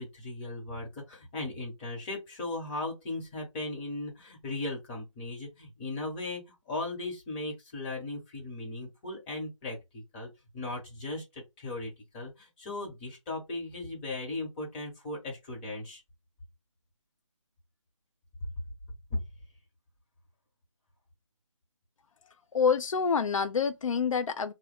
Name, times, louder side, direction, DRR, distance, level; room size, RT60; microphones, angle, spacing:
voice 1, 0.0-16.0 19.1-19.2, left 2 dB, 20° left, 1.2 m, -37 dB
voice 2, 22.5-24.5, left 6 dB, 80° left, 0.5 m, -27 dB
3.5 x 2.3 x 3.4 m
figure-of-eight pair, 155°, 17 cm